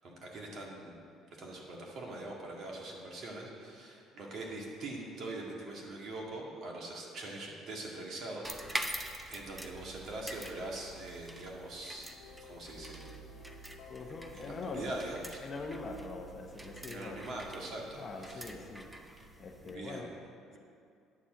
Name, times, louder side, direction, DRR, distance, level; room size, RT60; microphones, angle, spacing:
voice 1, 0.0-1.0 1.4-12.1 12.4-13.2 14.3-15.4 16.9-18.5 19.6-20.1 20.5-20.6, right 2 dB, 50° right, -2 dB, 1.8 m, -43 dB
sound 1, 8.4-19.8, right 1 dB, 5° right, 0.6 m, -45 dB
sound 2, 11.8-16.1, left 7 dB, 65° left, 0.7 m, -57 dB
voice 2, 13.9-15.0 15.4-17.2 17.9-18.9 19.4-20.1, left 3 dB, 30° left, 2 dB, 0.8 m, -42 dB
9.6 x 4.3 x 7.5 m, 2.4 s
cardioid pair, 135°, 0 cm